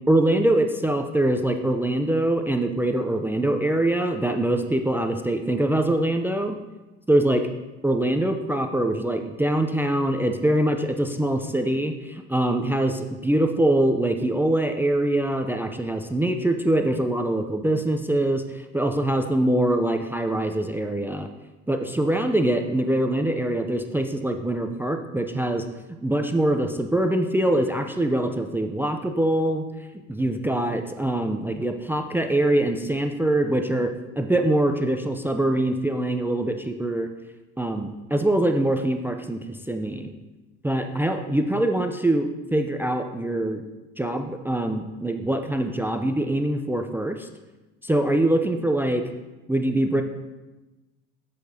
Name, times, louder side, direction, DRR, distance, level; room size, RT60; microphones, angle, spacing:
voice 1, 0.1-6.6 7.1-7.4 7.8-12.9 13.2-21.3 21.7-29.7 30.1-33.9 34.2-37.1 37.6-40.1 40.6-43.6 44.0-47.3 47.8-49.0 49.5-50.0, right 1 dB, 5° right, 6 dB, 0.4 m, -23 dB
8.7 x 6.7 x 2.7 m, 1.1 s
supercardioid pair, 85°, 33 cm